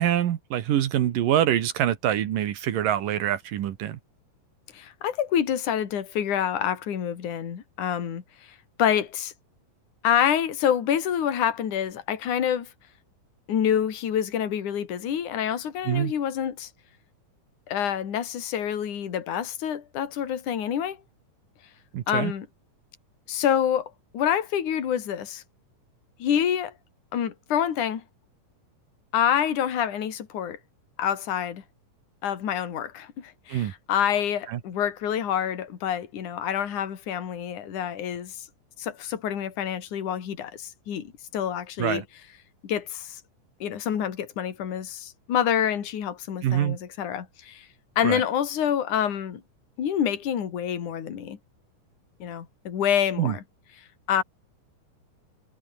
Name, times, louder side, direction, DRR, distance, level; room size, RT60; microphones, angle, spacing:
voice 1, 0.0-4.0 15.9-16.1 21.9-22.3 33.5-33.7 34.5-34.6 41.8-42.0 46.4-46.8 48.0-48.2 53.2-53.3, right 11 dB, 80° right, 3.2 m, -25 dB
voice 2, 4.7-9.3 10.0-12.7 13.5-16.7 17.7-21.0 22.1-22.5 23.3-25.4 26.2-26.7 27.1-28.0 29.1-30.6 31.0-31.6 32.2-38.5 38.8-42.0 42.6-43.2 43.6-47.7 48.0-49.4 49.8-51.4 52.2-53.4 53.8-54.2, left 9 dB, 65° left, 3.9 m, -27 dB
omnidirectional pair, 3.8 m